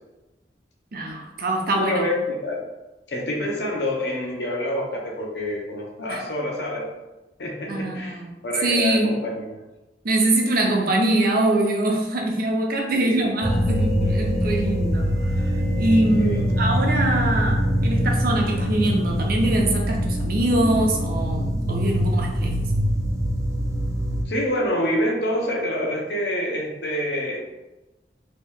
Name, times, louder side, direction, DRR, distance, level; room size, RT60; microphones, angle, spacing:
voice 1, 0.9-2.0 6.1-6.2 7.7-8.3 8.6-9.1 10.0-15.1 15.4-15.5 15.8-22.7, right 1 dB, 55° right, 1 dB, 0.6 m, -23 dB
voice 2, 1.7-2.6 3.1-6.9 7.4-9.6 12.9-13.3 16.2-16.4 24.3-27.4, left 1 dB, 65° left, -1 dB, 0.7 m, -27 dB
sound 1, 13.4-24.2, equal, 15° right, 0.3 m, -23 dB
2.9 x 2.7 x 3.5 m, 1.0 s
head